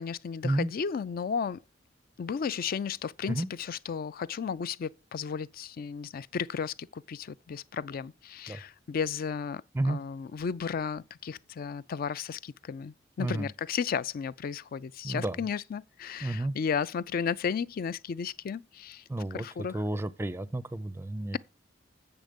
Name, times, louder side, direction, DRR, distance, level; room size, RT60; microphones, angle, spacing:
voice 1, 0.0-1.6 2.2-19.0 19.3-19.8, left 6 dB, 50° left, 0.4 m, -34 dB
voice 2, 15.0-15.4 16.2-16.5 19.1-19.5 19.7-21.4, right 1 dB, 15° right, 0.5 m, -31 dB
7.7 x 7.1 x 5.2 m
head